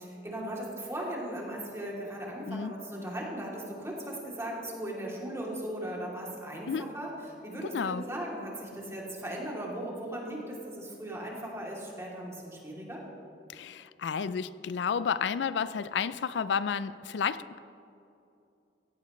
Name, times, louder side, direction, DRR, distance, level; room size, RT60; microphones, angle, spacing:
voice 1, 0.0-7.1 7.4-13.0, right 1 dB, 15° right, -4 dB, 2.9 m, -38 dB
voice 2, 7.6-8.0 13.5-17.6, left 6 dB, 80° left, 15 dB, 0.4 m, -31 dB
16.0 x 16.0 x 3.2 m, 2.7 s
head